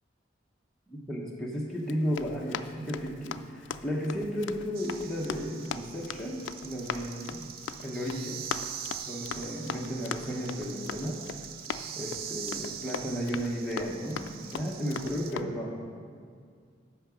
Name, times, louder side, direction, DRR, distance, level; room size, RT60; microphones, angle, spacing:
voice 1, 0.9-7.5 7.8-8.4 9.1-11.2 12.0-16.0, equal, ahead, -5 dB, 0.9 m, -34 dB
Run, 1.8-15.4, left 7 dB, 70° left, 0.3 m, -41 dB
sound 1, 4.7-15.3, right 8 dB, 50° right, 0.4 m, -43 dB
8.7 x 5.8 x 6.0 m, 2.1 s
head